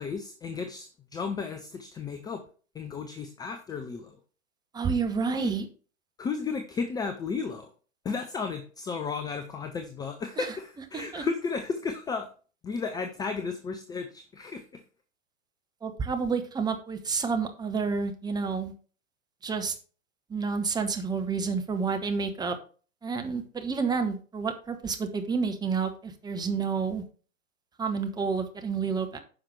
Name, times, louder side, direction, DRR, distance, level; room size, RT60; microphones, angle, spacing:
voice 1, 0.0-2.4 2.7-4.2 5.3-5.5 6.2-7.7 8.0-12.3 12.6-14.8, left 5 dB, 10° left, 7 dB, 0.6 m, -34 dB
voice 2, 4.7-5.6 10.4-10.5 10.9-11.2 15.8-18.7 19.4-19.7 20.3-22.6 23.0-27.0 27.8-29.2, right 5 dB, 10° right, 5 dB, 1.2 m, -29 dB
9.8 x 5.8 x 4.7 m, 0.38 s
figure-of-eight pair, 100°, 39 cm